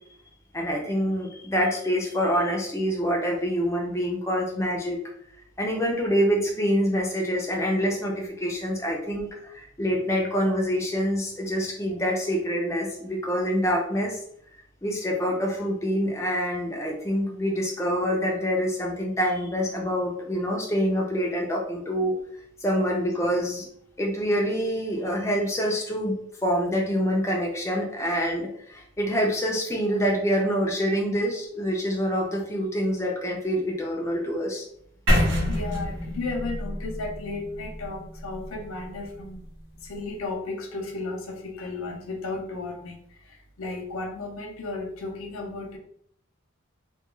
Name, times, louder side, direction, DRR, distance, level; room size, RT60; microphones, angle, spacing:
voice 1, 0.5-5.0 5.6-14.2 14.8-22.1 22.6-23.7 24.0-26.2 26.4-34.7, equal, 15° left, -1 dB, 0.4 m, -26 dB
sound 1, 35.1-39.0, equal, 65° right, 0.8 m, -27 dB
voice 2, 35.5-39.5 39.8-45.8, left 3 dB, 85° left, 1 dB, 0.5 m, -34 dB
2.3 x 2.2 x 2.9 m, 0.67 s
head